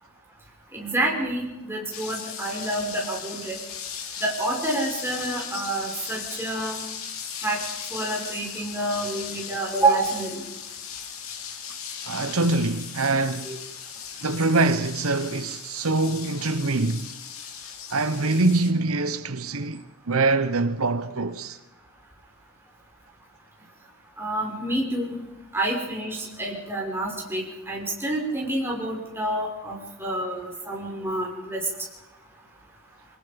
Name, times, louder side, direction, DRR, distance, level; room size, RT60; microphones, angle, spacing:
voice 1, 0.7-3.6 4.2-6.8 7.4-7.6 7.9-10.4 13.4-13.6 24.2-25.2 25.5-31.6, right 2 dB, 10° right, 5.7 m, -28 dB
sound 1, 1.9-18.7, left 7 dB, 80° left, 2.9 m, -37 dB
voice 2, 12.1-13.5 14.2-17.1 17.9-21.6, right 3 dB, 85° right, 1.1 m, -24 dB
24.0 x 20.0 x 5.3 m
head